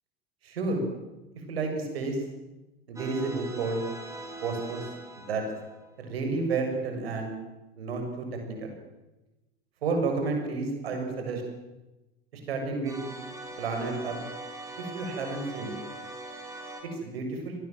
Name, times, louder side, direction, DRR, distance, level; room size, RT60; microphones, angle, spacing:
voice 1, 0.4-0.8 1.5-2.2 2.9-3.8 4.4-4.9 5.2-5.4 6.0-7.4 7.8-8.7 9.8-11.4 12.3-13.0 13.6-14.2 14.8-15.7 17.0-17.6, right 3 dB, 70° right, 4 dB, 7.3 m, -31 dB
sound 1, 3.0-6.1 12.9-16.8, right 2 dB, 10° right, 5.8 m, -42 dB
27.5 x 20.5 x 7.7 m, 1.0 s
figure-of-eight pair, 80°, 31 cm